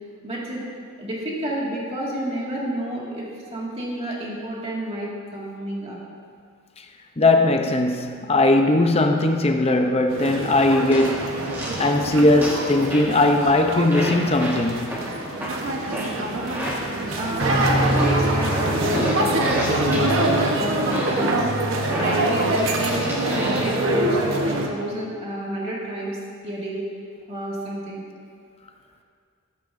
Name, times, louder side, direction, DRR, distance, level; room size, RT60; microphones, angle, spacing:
voice 1, 0.2-0.6 1.0-6.0 17.2-21.4 21.9-26.2 26.4-26.8 27.3-28.0, equal, 30° right, 2.0 m, -30 dB
voice 2, 7.2-11.3 11.8-14.9, left 2 dB, 30° left, 0.7 m, -19 dB
sound 1, 10.1-24.7, right 1 dB, 70° right, 1.1 m, -24 dB
sound 2, 10.4-10.5 10.9-11.9 12.4-13.2 13.9-17.0 17.4-20.3 20.9-21.4 21.9-23.8, equal, 10° right, 1.5 m, -31 dB
12.5 x 12.5 x 2.6 m
head